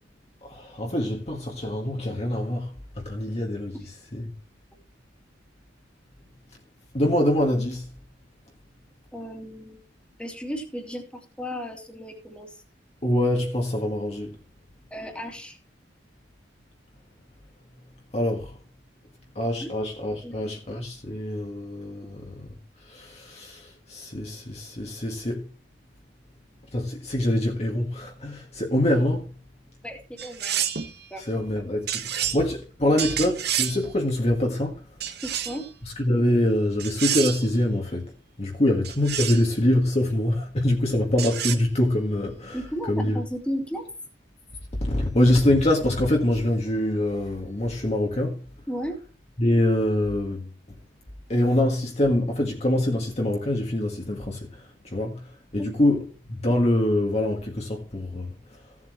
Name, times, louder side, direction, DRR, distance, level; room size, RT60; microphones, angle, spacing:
voice 1, 0.4-3.8 4.1-4.3 6.9-7.9 13.0-14.4 18.1-18.5 19.4-22.5 22.9-25.5 26.7-29.3 31.2-34.8 35.8-38.1 38.4-42.6 42.9-43.2 44.8-48.4 49.4-50.5 51.3-55.3 55.5-58.3, left 1 dB, 35° left, 1.7 m, -24 dB
voice 2, 9.1-9.8 10.2-12.6 14.9-15.6 19.6-19.7 20.2-20.5 29.8-30.6 31.1-31.2 32.2-32.4 35.2-35.6 42.5-43.9 48.7-49.0 55.6-55.7, equal, 5° left, 2.3 m, -34 dB
sound 1, 30.2-30.9 31.9-32.4 33.0-33.8 35.0-35.7 36.8-37.5 38.8-39.5 41.2-41.6, right 10 dB, 55° right, 1.3 m, -28 dB
16.0 x 7.7 x 3.2 m
head